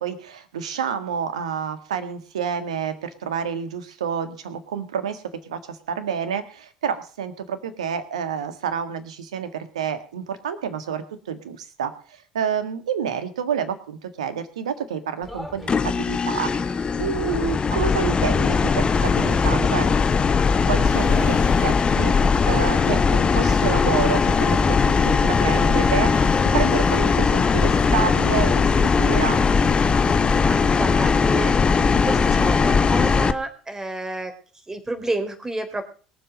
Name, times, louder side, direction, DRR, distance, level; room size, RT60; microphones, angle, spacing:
voice 1, 0.0-16.7 17.0-19.9 20.7-26.3 26.5-28.6 29.0-29.4, right 7 dB, 75° right, 11 dB, 1.8 m, -29 dB
sound 1, 15.2-31.9, left 1 dB, 5° left, 4.9 m, -37 dB
sound 2, 15.7-33.3, left 5 dB, 30° left, 1.2 m, -19 dB
sound 3, 18.9-32.6, left 9 dB, 70° left, 1.5 m, -40 dB
voice 2, 30.4-34.3 34.7-35.8, right 2 dB, 15° right, 7 dB, 3.9 m, -30 dB
22.0 x 7.7 x 5.2 m, 0.41 s
figure-of-eight pair, 65°, 3 cm